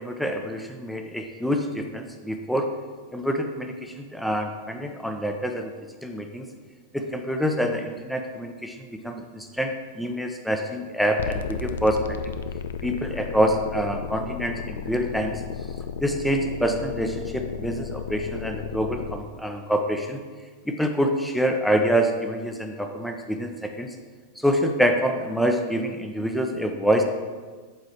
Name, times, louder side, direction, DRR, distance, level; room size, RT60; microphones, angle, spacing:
voice 1, 0.0-2.7 3.1-5.7 6.0-6.5 6.9-12.2 12.8-15.4 16.0-20.2 20.7-23.9 24.4-27.0, equal, ahead, 4 dB, 0.8 m, -26 dB
sound 1, 11.2-19.2, left 6 dB, 60° left, 0.4 m, -33 dB
7.9 x 5.1 x 4.4 m, 1.5 s
figure-of-eight pair, 90°, 0 cm